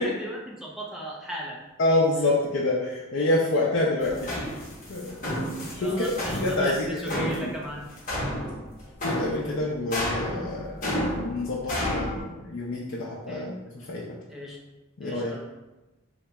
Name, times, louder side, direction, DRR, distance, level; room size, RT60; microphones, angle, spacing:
voice 1, 0.0-1.6 5.8-7.9 13.3-13.5 14.3-14.6 15.0-15.5, equal, ahead, -3 dB, 0.5 m, -36 dB
voice 2, 1.8-4.3 4.9-5.2 5.8-6.0 6.4-7.5 9.0-10.8 11.2-13.5 13.9-14.0 15.0-15.3, left 2 dB, 60° left, -5 dB, 0.5 m, -27 dB
sound 1, 4.0-12.2, left 1 dB, 40° left, 1.0 m, -31 dB
4.0 x 2.8 x 2.2 m, 1.0 s
head